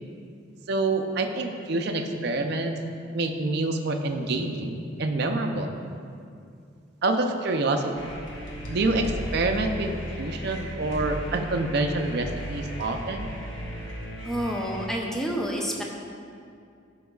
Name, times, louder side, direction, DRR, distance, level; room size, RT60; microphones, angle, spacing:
voice 1, 0.7-2.8 3.1-5.7 7.0-8.2 8.7-13.3, right 2 dB, 55° right, 4 dB, 0.5 m, -27 dB
sound 1, 7.9-14.9, equal, 70° left, 1.2 m, -36 dB
voice 2, 14.2-15.8, equal, 5° left, -1 dB, 0.6 m, -29 dB
11.5 x 5.4 x 2.3 m, 2.4 s
head